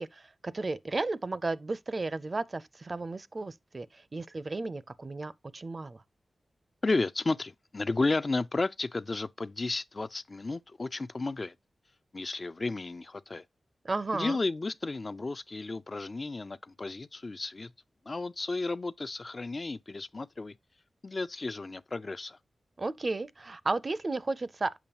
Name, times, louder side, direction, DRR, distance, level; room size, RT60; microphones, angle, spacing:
voice 1, 0.0-6.0 13.8-14.4 22.8-24.8, right 3 dB, 40° right, 0.4 m, -34 dB
voice 2, 6.8-11.5 12.1-13.4 14.1-17.7 18.1-20.5 21.0-22.4, left 3 dB, 40° left, 0.3 m, -33 dB
7.0 x 5.1 x 2.9 m
cardioid pair, 70°, 0 cm